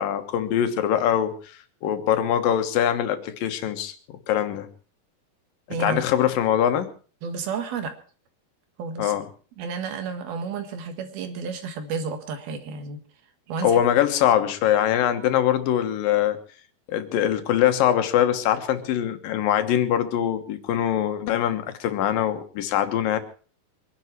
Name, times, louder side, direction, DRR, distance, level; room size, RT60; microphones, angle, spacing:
voice 1, 0.0-1.3 1.8-3.9 4.3-4.7 5.7-6.9 9.0-9.2 13.6-16.4 16.9-23.2, left 10 dB, 75° left, 8 dB, 3.0 m, -23 dB
voice 2, 5.7-6.0 7.2-7.9 8.8-9.1 9.6-13.0 13.5-13.8, right 5 dB, 85° right, 6 dB, 3.6 m, -31 dB
24.5 x 11.0 x 4.6 m, 0.39 s
omnidirectional pair, 4.2 m